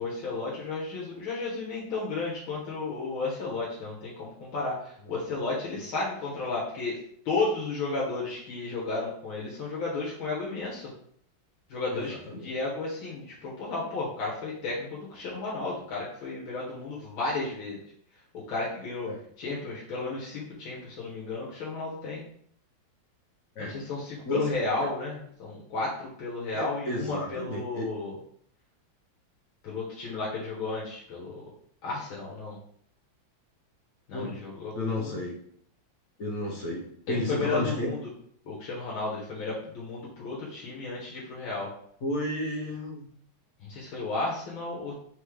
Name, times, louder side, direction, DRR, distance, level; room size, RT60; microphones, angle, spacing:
voice 1, 0.0-7.0 7.2-10.9 11.7-17.8 18.3-19.1 19.4-22.2 23.6-28.1 29.6-31.4 31.8-32.6 34.1-35.2 37.1-38.0 38.4-41.7 43.6-44.9, left 3 dB, 80° left, -5 dB, 1.7 m, -33 dB
voice 2, 11.9-12.5 19.0-19.2 23.5-23.8 24.2-24.5 26.5-27.9 34.1-34.4 34.7-35.4 36.2-37.9 42.0-43.1, left 1 dB, 55° left, -2 dB, 1.1 m, -32 dB
4.0 x 3.6 x 3.2 m, 0.63 s
omnidirectional pair, 2.2 m